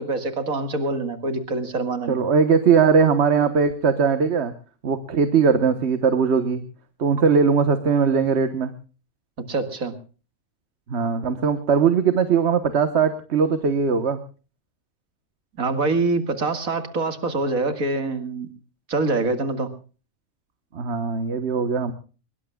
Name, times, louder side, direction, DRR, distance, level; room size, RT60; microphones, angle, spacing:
voice 1, 0.0-2.2 9.5-9.9 15.6-18.5 18.9-19.7, right 3 dB, 75° right, 8 dB, 2.4 m, -25 dB
voice 2, 2.1-4.5 4.8-6.6 7.0-8.7 10.9-14.2 20.7-21.9, right 6 dB, 50° right, 9 dB, 1.4 m, -20 dB
23.5 x 21.5 x 2.3 m, 0.36 s
omnidirectional pair, 1.5 m